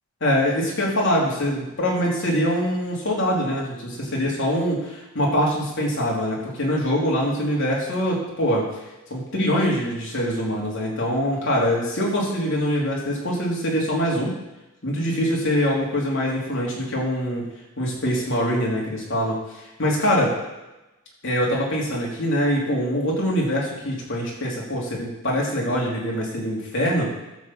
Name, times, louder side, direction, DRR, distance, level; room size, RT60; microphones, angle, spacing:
voice 1, 0.2-8.7 9.1-14.4 14.8-17.5 17.8-19.4 19.8-20.4 21.2-27.1, equal, 60° left, -3 dB, 3.0 m, -23 dB
12.0 x 4.3 x 7.4 m, 1.0 s
head